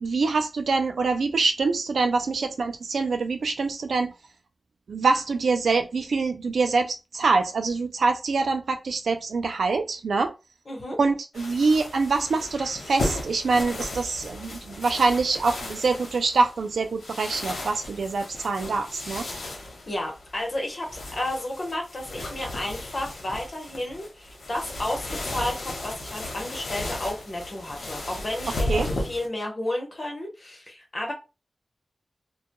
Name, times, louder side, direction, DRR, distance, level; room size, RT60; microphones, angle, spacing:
voice 1, 0.0-4.1 4.9-10.3 11.0-19.2 28.7-28.9, right 4 dB, 90° right, 0.3 m, -25 dB
voice 2, 10.7-11.0 19.9-31.1, left 1 dB, 55° left, 0.9 m, -32 dB
sound 1, 11.3-29.3, left 1 dB, 90° left, 0.8 m, -35 dB
2.2 x 2.2 x 2.8 m
cardioid pair, 50°, 0 cm